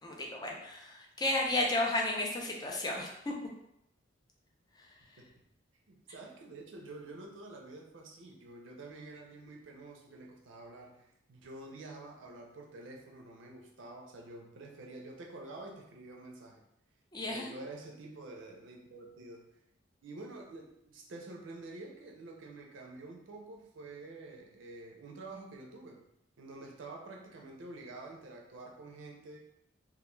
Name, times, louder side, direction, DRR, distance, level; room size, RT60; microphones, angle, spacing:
voice 1, 0.0-3.3 4.7-5.2 17.1-17.5, left 2 dB, 20° left, -1 dB, 0.4 m, -33 dB
voice 2, 5.9-16.6 17.2-19.5 20.0-26.1 26.4-29.4, right 2 dB, 75° right, 1 dB, 0.5 m, -48 dB
2.2 x 2.2 x 3.0 m, 0.78 s
head